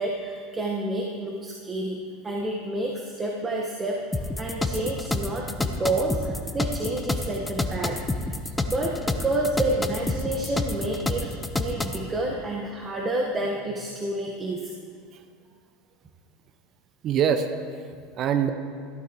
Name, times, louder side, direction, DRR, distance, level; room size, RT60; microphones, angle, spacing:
voice 1, 0.0-8.0 8.7-14.7, right 2 dB, 25° right, -1 dB, 1.3 m, -29 dB
sound 1, 4.1-12.0, left 2 dB, 15° left, 0.8 m, -28 dB
voice 2, 17.0-18.5, right 8 dB, 45° right, 8 dB, 0.8 m, -25 dB
14.5 x 12.5 x 3.1 m, 2.1 s
hypercardioid pair, 75°, 0 cm